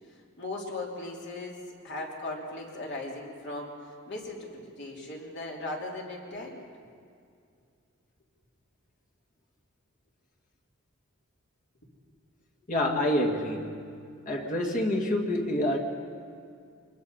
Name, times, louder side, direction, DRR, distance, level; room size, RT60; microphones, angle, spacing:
voice 1, 0.1-6.6, left 2 dB, 55° left, -1 dB, 3.2 m, -38 dB
voice 2, 12.7-13.9 14.3-15.8, left 1 dB, 40° left, 0 dB, 2.0 m, -27 dB
24.0 x 21.5 x 5.5 m, 2.3 s
head